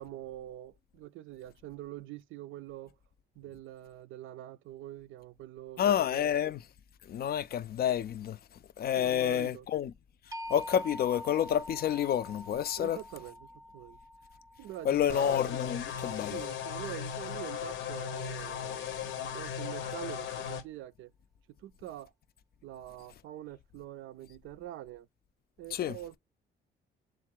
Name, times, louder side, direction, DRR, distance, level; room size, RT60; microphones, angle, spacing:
voice 1, 0.0-3.0 3.4-5.8 6.1-6.3 9.0-9.7 12.8-14.0 14.6-15.4 16.1-21.1 21.6-22.1 22.6-25.1 25.6-26.2, right 13 dB, 80° right, 0.4 m, -45 dB
voice 2, 5.8-6.7 7.1-8.4 8.8-9.9 10.5-13.0 14.8-16.4 25.7-26.0, left 9 dB, 50° left, 0.4 m, -29 dB
sound 1, 10.3-16.3, left 1 dB, 15° right, 0.4 m, -46 dB
sound 2, 15.1-20.6, left 8 dB, 75° left, 0.8 m, -37 dB
3.7 x 2.4 x 4.5 m
cardioid pair, 90°, 20 cm